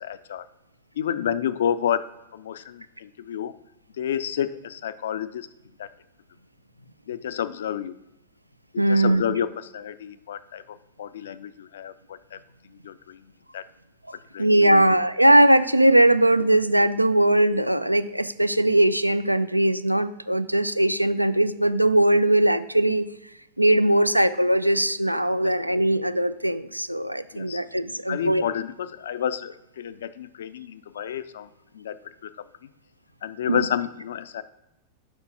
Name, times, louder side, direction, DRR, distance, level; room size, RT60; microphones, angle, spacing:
voice 1, 0.0-0.4 1.0-2.0 2.3-3.6 4.0-5.5 5.8-5.9 7.1-8.0 8.7-12.4 12.8-13.2 13.5-13.6 14.3-14.8 25.4-25.5 27.3-27.6 28.1-31.5 31.7-32.5 33.2-34.4, left 9 dB, 60° left, 14 dB, 0.4 m, -30 dB
voice 2, 8.8-9.2 14.4-23.1 23.6-28.4 33.5-33.7, right 1 dB, 90° right, 13 dB, 0.3 m, -20 dB
5.2 x 4.4 x 5.8 m, 0.89 s
figure-of-eight pair, 90°, 0 cm